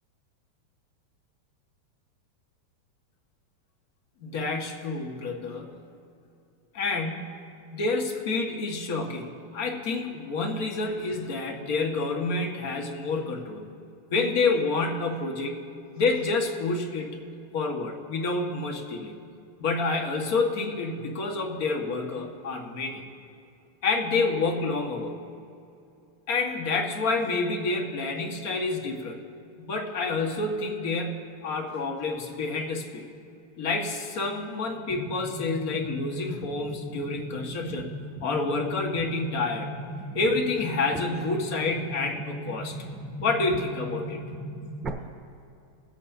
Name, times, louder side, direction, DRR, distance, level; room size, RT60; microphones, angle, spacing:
voice 1, 4.2-5.8 6.7-7.4 7.7-13.7 14.1-15.5 16.0-17.2 17.5-19.2 19.6-23.0 23.8-25.2 26.3-29.2 29.6-33.1 33.6-37.9 38.2-39.7 40.1-42.8 43.2-44.2, left 3 dB, 50° left, 2 dB, 1.7 m, -28 dB
sound 1, 34.9-44.9, right 1 dB, 15° right, 0.9 m, -38 dB
22.5 x 8.3 x 2.9 m, 2.5 s
supercardioid pair, 165°, 0 cm